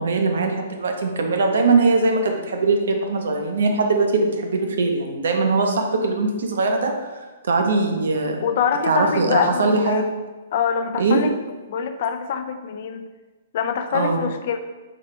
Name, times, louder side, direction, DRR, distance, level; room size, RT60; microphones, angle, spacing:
voice 1, 0.0-6.9 7.4-8.4 8.9-10.0 11.0-11.2 13.9-14.2, right 3 dB, 75° right, 3 dB, 0.7 m, -21 dB
voice 2, 8.4-10.0 10.5-11.3 11.7-13.1 13.5-14.6, left 7 dB, 55° left, 8 dB, 0.3 m, -24 dB
4.2 x 3.2 x 3.2 m, 1.2 s
hypercardioid pair, 140°, 0 cm